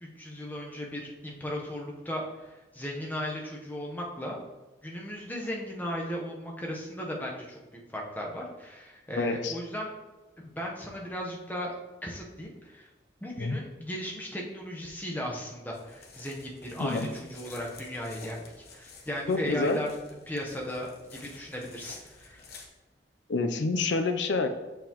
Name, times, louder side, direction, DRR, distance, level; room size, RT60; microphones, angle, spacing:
voice 1, 0.0-4.4 4.8-9.9 10.4-11.8 12.0-12.9 13.2-19.9 20.3-22.4, equal, 10° left, -2 dB, 0.9 m, -36 dB
voice 2, 9.2-9.5 13.4-13.6 16.8-17.1 19.3-19.8 23.3-24.5, left 3 dB, 90° left, 7 dB, 0.5 m, -28 dB
sound 1, 15.7-22.7, left 4 dB, 60° left, 0.9 m, -51 dB
6.7 x 5.6 x 3.0 m, 1.1 s
head